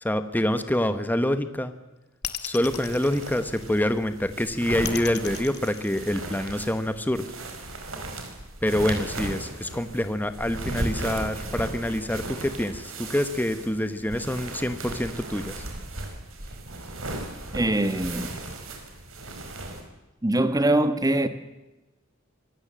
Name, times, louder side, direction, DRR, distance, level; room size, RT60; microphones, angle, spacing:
voice 1, 0.0-1.7 2.4-7.2 8.6-15.7, left 1 dB, 10° left, 1.1 m, -26 dB
sound 1, 2.2-4.0 4.8-6.6, left 11 dB, 55° left, 1.9 m, -36 dB
sound 2, 2.6-19.8, right 2 dB, 80° right, 4.8 m, -37 dB
sound 3, 10.3-17.2, right 1 dB, 55° right, 3.3 m, -45 dB
voice 2, 17.5-18.4 20.2-21.3, right 1 dB, 20° right, 1.3 m, -23 dB
25.0 x 17.0 x 7.6 m
head